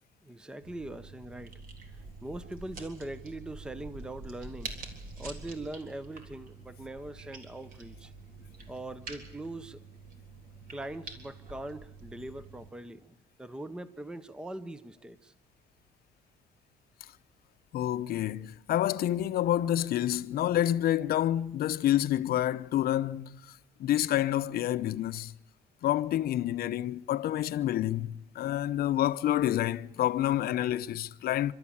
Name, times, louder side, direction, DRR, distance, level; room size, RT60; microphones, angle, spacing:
voice 1, 0.2-1.5 1.9-4.7 5.2-8.1 8.7-9.8 10.7-15.3, right 1 dB, 5° right, 0.7 m, -41 dB
sound 1, 0.6-12.7, right 3 dB, 55° right, 3.8 m, -46 dB
voice 2, 17.7-23.4 23.8-25.3 25.8-31.5, left 12 dB, 65° left, 0.8 m, -28 dB
29.5 x 13.0 x 8.6 m
cardioid pair, 110°, 17 cm